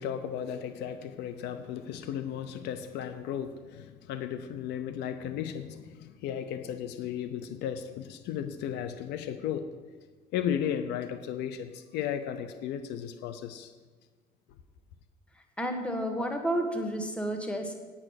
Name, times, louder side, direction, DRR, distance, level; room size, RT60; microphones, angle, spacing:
voice 1, 0.0-9.7 10.3-13.7, left 9 dB, 85° left, 9 dB, 0.7 m, -35 dB
voice 2, 15.6-17.8, equal, 5° left, 4 dB, 1.6 m, -31 dB
8.8 x 8.8 x 6.5 m, 1.4 s
cardioid pair, 110°, 17 cm